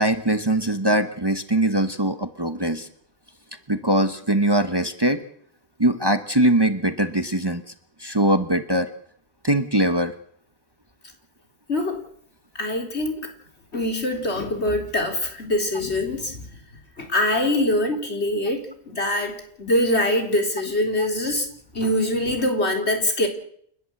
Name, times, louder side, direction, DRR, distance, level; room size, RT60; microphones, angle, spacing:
voice 1, 0.0-2.9 3.7-5.2 5.8-7.6 8.0-8.9 9.4-10.1 21.0-21.1, right 1 dB, 25° right, 8 dB, 1.2 m, -21 dB
voice 2, 11.7-12.0 12.5-13.3 13.7-16.5 17.0-21.5 21.7-23.3, left 1 dB, 75° left, 3 dB, 4.1 m, -24 dB
30.0 x 11.5 x 7.8 m, 0.64 s
omnidirectional pair, 1.1 m